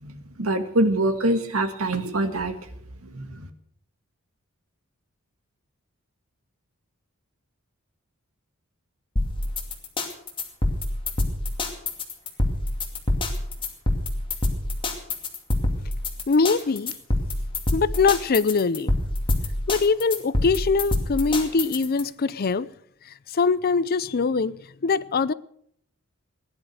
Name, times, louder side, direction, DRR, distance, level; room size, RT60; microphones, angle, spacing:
voice 1, 0.0-2.5 3.0-3.5, right 1 dB, 75° right, 1.8 m, -25 dB
sound 1, 9.2-22.0, left 2 dB, 25° left, 2.5 m, -26 dB
voice 2, 16.3-16.9 17.7-18.9 19.7-22.7 23.3-24.6 24.8-25.3, left 4 dB, 45° left, 0.5 m, -22 dB
17.5 x 11.0 x 6.5 m
head